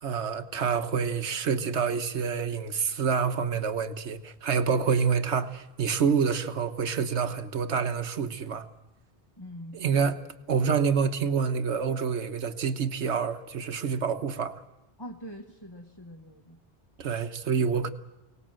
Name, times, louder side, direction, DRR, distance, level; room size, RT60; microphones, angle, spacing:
voice 1, 0.0-8.7 9.7-10.2 10.5-14.6 17.0-17.9, right 6 dB, 75° right, 1.4 m, -27 dB
voice 2, 9.4-10.2 15.0-16.6, equal, 20° left, 1.3 m, -44 dB
24.0 x 18.0 x 7.6 m
omnidirectional pair, 1.2 m